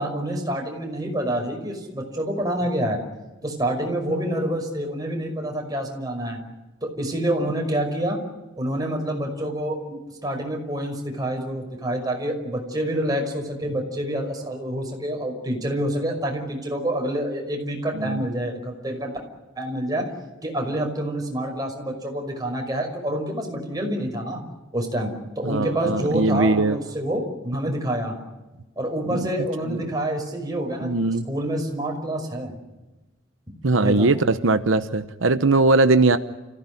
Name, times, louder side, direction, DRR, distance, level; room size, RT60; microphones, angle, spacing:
voice 1, 0.0-3.0 3.4-6.4 6.8-8.2 8.6-19.1 19.6-20.0 20.4-24.4 24.7-28.1 28.8-32.5 33.8-34.1, right 1 dB, 20° right, 1 dB, 5.6 m, -27 dB
voice 2, 25.4-26.8 29.1-29.3 29.6-29.9 30.8-31.3 33.6-36.2, right 2 dB, 85° right, 10 dB, 0.9 m, -20 dB
30.0 x 16.0 x 10.0 m, 1.1 s
head